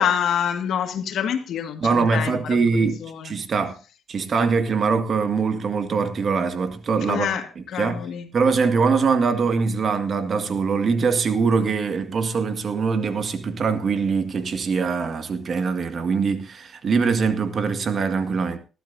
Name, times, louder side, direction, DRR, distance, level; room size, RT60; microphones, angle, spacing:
voice 1, 0.0-3.3 7.1-7.5 7.7-8.3, left 8 dB, 75° left, 1.9 m, -26 dB
voice 2, 1.8-3.0 3.2-3.8 4.1-7.3 7.6-8.0 8.3-18.6, right 5 dB, 50° right, 1.8 m, -22 dB
20.0 x 12.5 x 2.7 m
cardioid pair, 90°, 0 cm